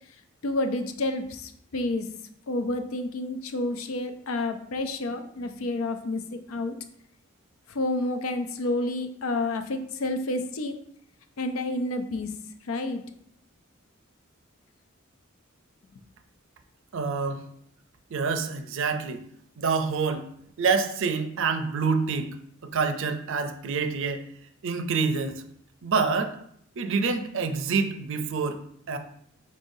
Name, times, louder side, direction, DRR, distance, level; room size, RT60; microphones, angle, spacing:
voice 1, 0.4-2.1 2.5-6.7 7.7-10.8 11.4-12.3 12.7-13.0, left 2 dB, 75° left, 7 dB, 0.5 m, -29 dB
voice 2, 16.9-17.4 18.1-19.2 19.6-20.3 20.6-22.3 22.6-24.3 24.6-25.4 25.8-26.4 26.8-28.6 28.9-29.0, right 5 dB, 65° right, 7 dB, 0.5 m, -27 dB
5.4 x 3.7 x 2.6 m, 0.67 s
head